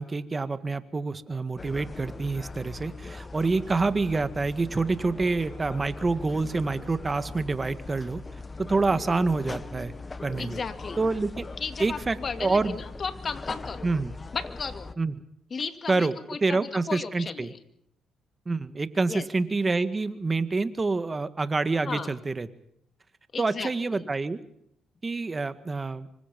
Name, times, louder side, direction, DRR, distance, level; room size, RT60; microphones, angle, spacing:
voice 1, 0.0-8.2 8.6-9.9 10.2-10.6 11.0-11.5 11.8-12.8 13.8-14.1 15.0-15.1 15.9-17.5 18.5-22.5 23.4-24.4 25.0-26.1, right 3 dB, 25° right, 11 dB, 1.8 m, -27 dB
sound 1, 1.6-14.9, left 3 dB, 25° left, 1.4 m, -40 dB
voice 2, 8.9-9.3 10.4-11.0 11.6-13.9 14.3-14.9 15.5-17.6 19.1-19.3 21.8-22.1 23.3-24.1, left 5 dB, 40° left, 9 dB, 2.3 m, -35 dB
26.5 x 25.0 x 5.4 m, 0.73 s
cardioid pair, 90°, 0 cm